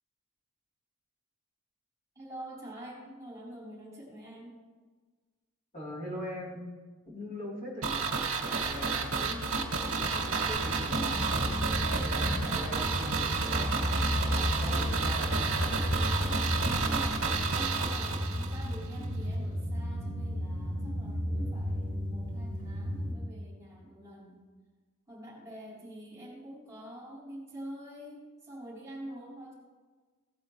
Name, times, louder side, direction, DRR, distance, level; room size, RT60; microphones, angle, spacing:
voice 1, 2.2-4.6 16.8-24.4 25.1-29.5, right 1 dB, 15° right, -7 dB, 3.6 m, -46 dB
voice 2, 5.7-6.6 7.1-9.5 9.8-11.3 11.8-13.8 14.3-15.8, equal, 40° left, -7 dB, 3.5 m, -42 dB
sound 1, 7.8-18.8 19.0-19.1, right 5 dB, 80° right, 1.8 m, -31 dB
sound 2, 8.6-16.5, left 3 dB, 80° left, 0.6 m, -44 dB
sound 3, 10.5-23.1, equal, 55° left, 1.7 m, -33 dB
16.5 x 8.2 x 3.2 m, 1.4 s
head